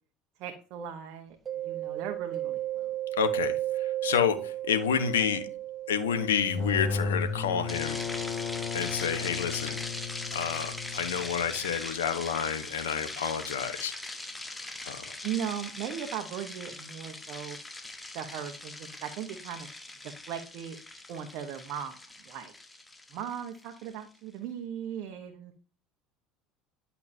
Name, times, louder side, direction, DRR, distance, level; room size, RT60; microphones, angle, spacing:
voice 1, 0.4-2.9 15.2-17.6 18.1-19.7 20.0-20.8 21.1-22.0 22.2-22.5 23.1-25.5, right 9 dB, 65° right, 4 dB, 1.1 m, -38 dB
Mallet percussion, 1.5-11.0, right 13 dB, 35° right, 0.8 m, -36 dB
voice 2, 3.2-5.5 5.9-8.0 8.7-9.8 10.3-13.9 14.8-15.1, left 8 dB, 85° left, 10 dB, 1.1 m, -29 dB
sound 1, 6.4-11.9, left 5 dB, 35° left, 2.5 m, -34 dB
sound 2, 7.7-24.0, left 2 dB, 15° left, 1.3 m, -41 dB
11.0 x 5.7 x 2.8 m, 0.38 s
hypercardioid pair, 75°, 0 cm